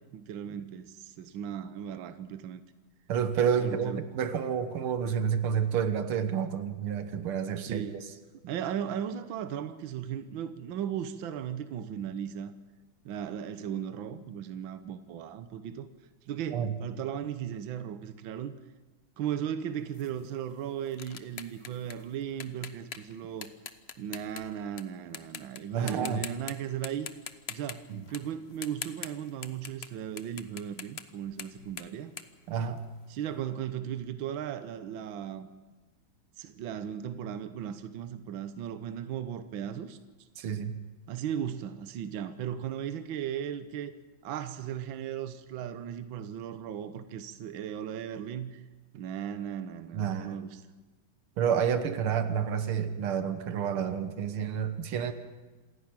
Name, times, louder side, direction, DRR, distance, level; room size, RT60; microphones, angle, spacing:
voice 1, 0.1-2.6 3.6-4.1 7.7-8.0 8.5-12.5 13.0-15.9 16.3-18.5 19.2-23.5 24.0-27.1 27.5-32.1 33.1-35.5 36.4-40.3 41.1-43.9 44.2-48.6 48.9-50.6, right 9 dB, 70° right, 11 dB, 1.7 m, -36 dB
voice 2, 3.1-8.0 16.5-16.7 25.7-26.2 27.9-28.0 32.5-32.8 40.4-40.8 49.9-50.4 51.4-55.1, right 7 dB, 90° right, 10 dB, 2.1 m, -29 dB
sound 1, 19.9-24.8 25.1-25.6 25.9-26.5 26.8-29.9 30.2-33.2, left 7 dB, 50° left, 0.7 m, -43 dB
27.0 x 11.0 x 9.0 m, 1.2 s
omnidirectional pair, 2.3 m